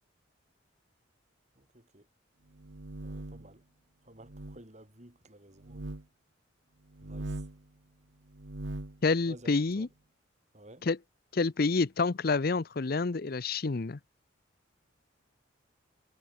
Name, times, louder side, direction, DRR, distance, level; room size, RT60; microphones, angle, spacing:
voice 1, 1.6-2.1 3.0-3.6 4.0-6.0 7.0-7.4 9.3-9.9 10.5-10.9, right 1 dB, 35° right, 3.5 m, -53 dB
sound 1, 2.5-3.5 4.2-4.6 5.6-6.0 6.9-7.6 8.3-9.0, right 2 dB, 70° right, 1.1 m, -40 dB
voice 2, 9.0-9.9 10.8-11.0 11.3-14.0, left 4 dB, 50° left, 0.6 m, -28 dB
head